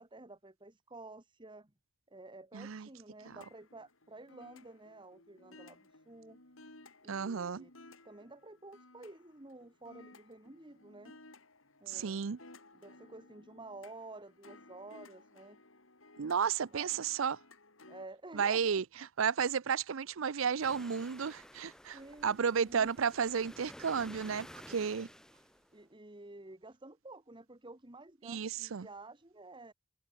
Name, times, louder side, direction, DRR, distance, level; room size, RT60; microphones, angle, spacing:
voice 1, 0.0-1.7 2.1-6.4 7.0-7.7 8.0-11.2 11.8-12.3 12.7-15.6 16.7-16.9 17.9-18.8 21.9-22.9 25.7-29.7, right 2 dB, 25° right, 1.8 m, -51 dB
voice 2, 2.5-2.9 7.1-7.6 11.9-12.4 16.2-17.4 18.3-18.8 19.2-25.1 28.2-28.9, right 6 dB, 70° right, 0.6 m, -33 dB
sound 1, 3.2-18.1, left 2 dB, 70° left, 7.5 m, -58 dB
sound 2, 20.6-25.8, equal, 5° left, 0.7 m, -53 dB
head